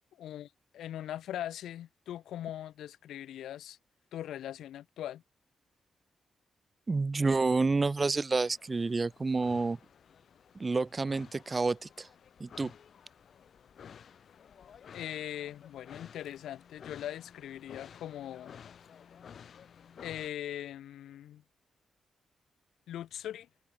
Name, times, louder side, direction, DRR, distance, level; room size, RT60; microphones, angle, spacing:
voice 1, 0.2-3.8 4.1-5.2 14.9-18.5 20.0-21.4 22.9-23.5, left 11 dB, 85° left, 2.2 m, -41 dB
voice 2, 6.9-9.8 10.5-12.1 12.4-12.7, right 3 dB, 35° right, 0.8 m, -29 dB
sound 1, 8.4-20.3, left 7 dB, 70° left, 1.4 m, -53 dB
supercardioid pair, 50°, 0 cm